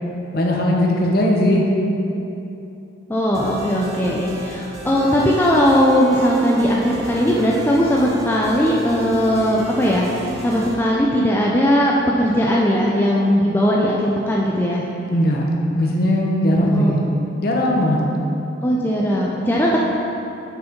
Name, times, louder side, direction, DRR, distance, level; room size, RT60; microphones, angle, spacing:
voice 1, 0.3-1.6 15.1-15.5 15.7-17.0 17.4-18.0, left 1 dB, 50° left, -1 dB, 0.9 m, -18 dB
voice 2, 3.1-14.8 16.6-16.9 18.6-19.8, equal, 10° left, -4 dB, 0.4 m, -18 dB
sound 1, 3.3-10.7, left 1 dB, 15° right, 0.7 m, -32 dB
6.6 x 4.8 x 5.1 m, 2.9 s
head